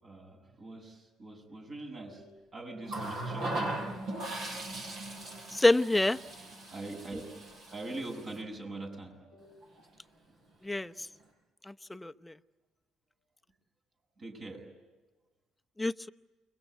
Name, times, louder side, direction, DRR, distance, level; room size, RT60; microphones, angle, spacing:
voice 1, 0.0-3.8 5.1-5.4 6.7-7.2 7.7-9.6 14.2-14.6, right 2 dB, 45° right, 2 dB, 7.8 m, -43 dB
Water tap faucet, 2.9-8.4 9.6-9.8, right 2 dB, 65° right, 7.6 m, -39 dB
voice 2, 5.5-6.2 10.6-10.9 11.9-12.3 15.8-16.1, left 2 dB, 10° left, 10 dB, 0.8 m, -26 dB
29.5 x 23.0 x 8.2 m, 1.2 s
hypercardioid pair, 55°, 0 cm